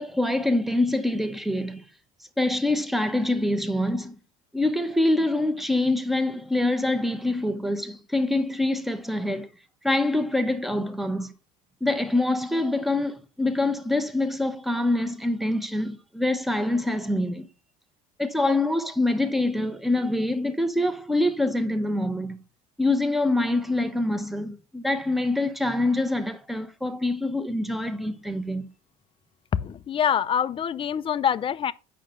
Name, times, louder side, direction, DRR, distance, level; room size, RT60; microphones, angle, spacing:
voice 1, 0.0-1.8 2.4-4.1 4.5-9.5 9.8-11.3 11.8-17.5 18.2-22.4 22.8-28.7, left 2 dB, ahead, 1.0 m, -25 dB
voice 2, 29.5-31.7, left 8 dB, 30° left, 0.5 m, -25 dB
8.3 x 5.9 x 5.2 m
cardioid pair, 135°, 17 cm